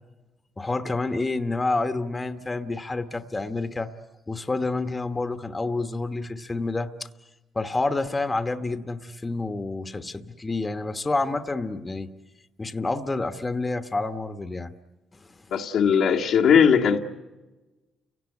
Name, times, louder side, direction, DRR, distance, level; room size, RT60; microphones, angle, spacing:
voice 1, 0.6-3.9 4.3-6.9 7.5-12.1 12.6-14.7 15.2-15.3, left 3 dB, 20° left, 9 dB, 1.2 m, -28 dB
voice 2, 15.5-17.0, left 7 dB, 80° left, 0 dB, 1.9 m, -19 dB
30.0 x 17.5 x 9.8 m, 1.1 s
cardioid pair, 90°, 0 cm